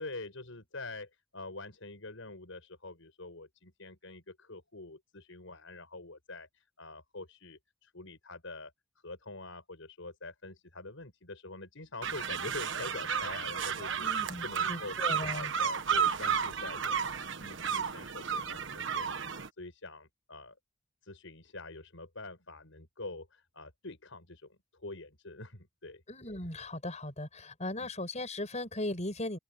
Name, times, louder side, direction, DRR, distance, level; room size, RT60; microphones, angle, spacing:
voice 1, 0.0-8.7 9.0-17.0 17.4-20.5 21.0-26.0 27.8-27.9, left 2 dB, 85° left, 5.6 m, -45 dB
sound 1, 12.0-19.5, right 7 dB, 65° right, 1.3 m, -33 dB
voice 2, 14.0-15.5 26.1-29.4, left 1 dB, 35° left, 7.9 m, -38 dB
open air
head